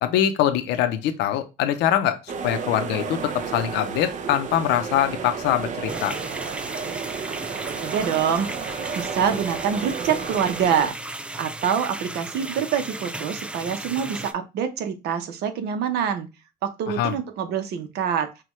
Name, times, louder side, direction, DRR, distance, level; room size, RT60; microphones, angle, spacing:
voice 1, 0.0-6.1 16.9-17.2, left 11 dB, 90° left, 9 dB, 0.7 m, -23 dB
sound 1, 2.3-10.9, right 6 dB, 50° right, 0.7 m, -32 dB
sound 2, 5.9-14.3, right 2 dB, 5° right, 0.4 m, -35 dB
voice 2, 7.8-8.5 8.9-11.0 11.4-16.3 16.6-18.3, right 8 dB, 75° right, 8 dB, 0.9 m, -25 dB
5.8 x 2.3 x 3.1 m, 0.27 s
cardioid pair, 110°, 17 cm